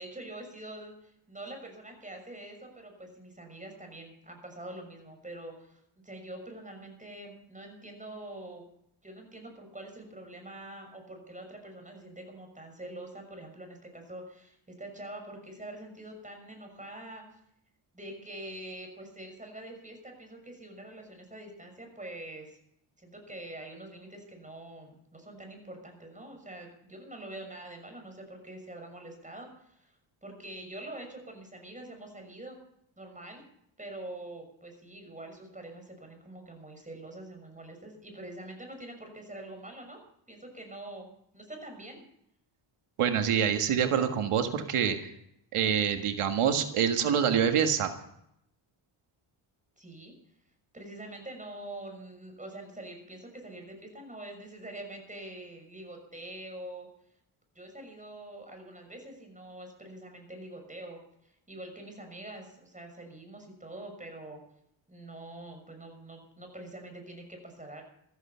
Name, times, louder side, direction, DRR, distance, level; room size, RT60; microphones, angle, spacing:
voice 1, 0.0-8.6 9.0-17.2 17.9-22.6 23.0-29.9 30.2-32.6 33.0-33.4 33.8-40.0 40.3-41.0 41.3-42.0 49.8-50.1 50.7-56.9 57.5-64.4 64.9-67.8, right 1 dB, 15° right, 4 dB, 6.3 m, -45 dB
voice 2, 43.0-45.1 45.5-47.9, right 8 dB, 85° right, 6 dB, 1.7 m, -26 dB
14.5 x 14.5 x 5.6 m, 0.73 s
cardioid pair, 95°, 50 cm